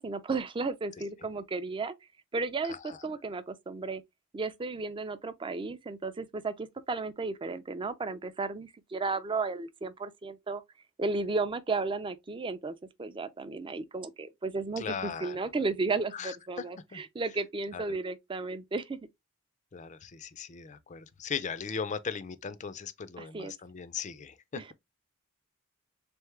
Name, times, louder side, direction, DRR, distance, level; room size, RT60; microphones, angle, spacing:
voice 1, 0.0-1.9 2.3-4.0 4.3-10.6 11.0-19.0 23.2-23.5 24.6-24.7, right 3 dB, 25° right, 0.4 m, -34 dB
voice 2, 14.8-15.4 16.1-16.7 16.9-17.0 17.7-17.8 19.7-24.6, left 6 dB, 35° left, 0.4 m, -38 dB
3.5 x 3.5 x 3.2 m
head